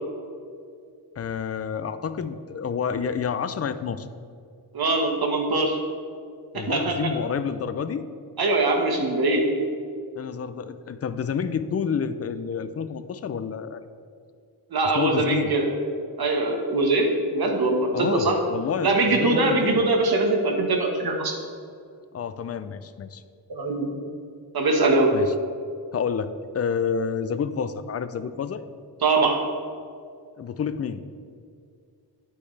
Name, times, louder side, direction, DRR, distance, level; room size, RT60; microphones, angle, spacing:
voice 1, 1.2-4.1 6.5-8.1 10.2-13.8 14.9-15.5 17.9-19.8 22.1-23.2 25.1-25.3 25.9-28.6 30.4-31.0, left 6 dB, 40° left, 12 dB, 0.4 m, -29 dB
voice 2, 4.7-5.8 6.5-7.1 8.4-9.4 14.7-15.6 16.2-18.4 18.8-21.3 23.5-23.9 24.5-25.1 29.0-29.4, right 2 dB, 65° right, 2 dB, 1.3 m, -22 dB
10.0 x 8.5 x 3.3 m, 2.3 s
wide cardioid pair, 150°, 41 cm